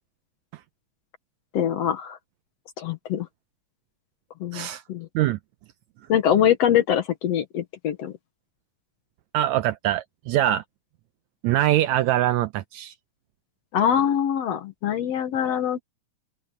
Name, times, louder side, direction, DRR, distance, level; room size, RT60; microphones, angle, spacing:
voice 1, 1.5-2.2 2.8-3.3 4.4-5.1 6.1-8.1 13.7-15.8, left 9 dB, 65° left, 2.0 m, -23 dB
voice 2, 9.3-10.6 11.4-12.9, right 13 dB, 80° right, 1.8 m, -23 dB
open air
omnidirectional pair, 3.5 m